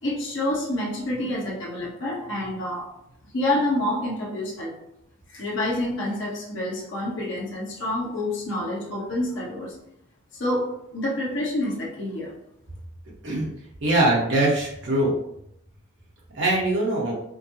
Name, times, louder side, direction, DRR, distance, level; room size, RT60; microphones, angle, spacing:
voice 1, 0.0-2.9 3.3-4.8 5.3-9.7 10.3-12.3, left 1 dB, 60° left, -4 dB, 1.0 m, -28 dB
voice 2, 13.8-15.1 16.3-17.1, right 1 dB, 55° right, -4 dB, 1.1 m, -22 dB
4.9 x 2.0 x 2.8 m, 0.76 s
head